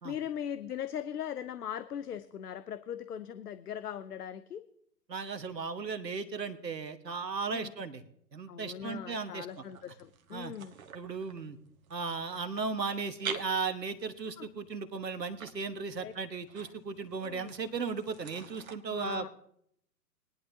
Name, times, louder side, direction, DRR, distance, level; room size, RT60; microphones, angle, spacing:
voice 1, 0.0-4.6 7.5-7.7 8.5-10.8 14.4-14.5 16.0-16.1 17.2-17.5 18.9-19.3, left 9 dB, 70° left, 13 dB, 0.7 m, -39 dB
voice 2, 5.1-8.0 8.3-9.5 10.3-10.5 10.9-11.6 11.9-19.3, right 5 dB, 80° right, 9 dB, 1.4 m, -36 dB
sound 1, 9.5-18.7, right 7 dB, 55° right, 1.3 m, -48 dB
20.5 x 11.0 x 2.7 m, 0.71 s
figure-of-eight pair, 120°, 49 cm